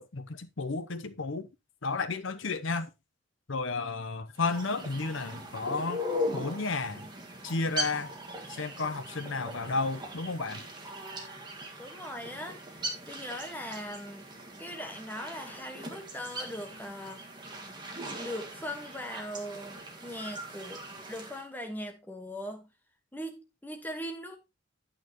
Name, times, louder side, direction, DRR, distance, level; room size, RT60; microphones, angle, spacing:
voice 1, 0.0-1.5 1.8-2.9 3.5-6.0 6.3-7.0 7.4-8.1 8.5-10.6, left 3 dB, 65° left, 0.8 m, -32 dB
sound 1, 4.4-21.4, equal, 20° right, 1.8 m, -40 dB
voice 2, 11.8-12.6 13.1-14.3 14.6-17.2 18.2-20.8 21.1-22.7 23.1-24.4, equal, 10° left, 1.4 m, -40 dB
8.9 x 8.9 x 3.0 m
head